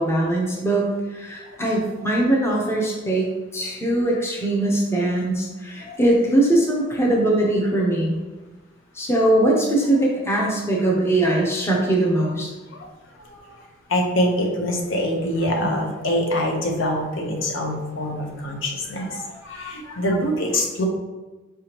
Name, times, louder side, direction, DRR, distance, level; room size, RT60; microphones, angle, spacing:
voice 1, 0.0-3.3 3.5-8.2 8.9-12.5 15.6-15.7, right 1 dB, 15° left, -2 dB, 0.7 m, -21 dB
voice 2, 13.9-20.9, left 1 dB, 65° left, 0 dB, 0.8 m, -25 dB
4.8 x 3.4 x 2.9 m, 1.2 s
head